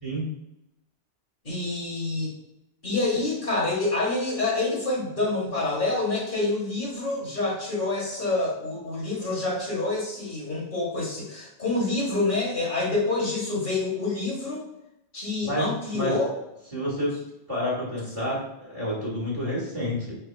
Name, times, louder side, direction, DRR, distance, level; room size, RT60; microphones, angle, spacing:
voice 1, 1.4-2.3 2.8-14.7 15.1-16.3, left 2 dB, 50° left, -4 dB, 1.7 m, -27 dB
voice 2, 15.4-16.1 16.7-17.2 17.5-20.1, equal, 35° right, -5 dB, 1.6 m, -29 dB
5.6 x 3.9 x 2.2 m, 0.89 s
omnidirectional pair, 1.1 m